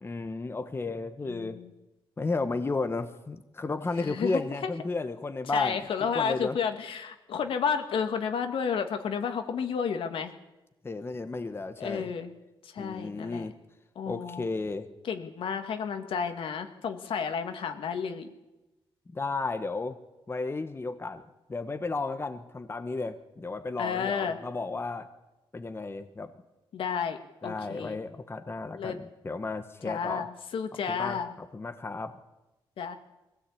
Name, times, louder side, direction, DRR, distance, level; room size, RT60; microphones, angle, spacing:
voice 1, 0.0-1.6 2.2-6.6 10.8-12.1 12.8-13.5 14.1-14.9 19.1-20.0 20.3-21.2 21.5-25.1 25.5-26.3 27.4-30.3 30.9-32.1, left 3 dB, 25° left, 8 dB, 1.3 m, -33 dB
voice 2, 1.2-1.7 4.0-4.7 5.5-10.3 11.8-12.3 12.6-13.5 14.0-14.5 15.0-18.3 23.8-24.4 26.7-27.2 27.4-28.0 28.8-29.0 29.8-31.3 32.8-33.0, left 6 dB, 75° left, 6 dB, 2.1 m, -31 dB
21.5 x 16.5 x 8.6 m, 1.0 s
cardioid pair, 95°, 9 cm